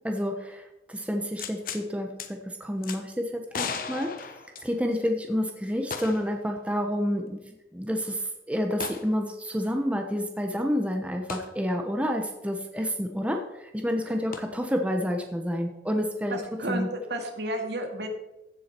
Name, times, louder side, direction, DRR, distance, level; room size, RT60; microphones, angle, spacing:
voice 1, 0.0-4.1 4.6-16.4 16.7-16.9, equal, 5° right, 3 dB, 1.0 m, -29 dB
sound 1, 1.4-1.8 2.2-2.3 2.8-3.0 3.5-5.0 5.9-6.4 6.7-6.8 8.8-9.1 11.3-11.5 14.3-14.4, left 5 dB, 50° left, 1.0 m, -35 dB
voice 2, 16.3-18.1, right 1 dB, 75° right, 4 dB, 2.0 m, -32 dB
15.0 x 7.4 x 4.5 m, 0.91 s
head